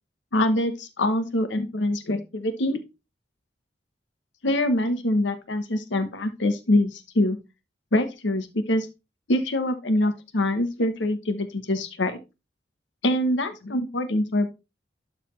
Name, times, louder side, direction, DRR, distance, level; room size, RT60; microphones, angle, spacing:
voice 1, 0.3-2.8 4.4-7.4 7.9-8.9 9.3-12.2 13.0-14.5, left 1 dB, 90° left, 9 dB, 1.0 m, -24 dB
12.0 x 4.1 x 3.1 m, 0.26 s
head